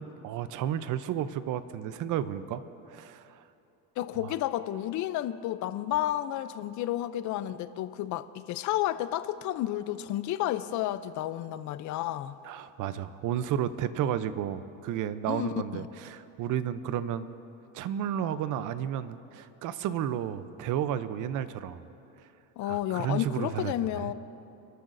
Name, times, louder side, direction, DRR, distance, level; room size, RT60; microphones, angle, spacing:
voice 1, 0.0-2.6 2.9-3.4 4.2-4.3 12.4-17.3 17.7-21.8 22.6-24.1, right 9 dB, 45° right, 13 dB, 0.6 m, -32 dB
voice 2, 4.0-12.4 15.3-15.9 22.6-24.1, left 13 dB, 45° left, 13 dB, 0.5 m, -31 dB
28.5 x 12.0 x 2.6 m, 2.8 s
cardioid pair, 135°, 42 cm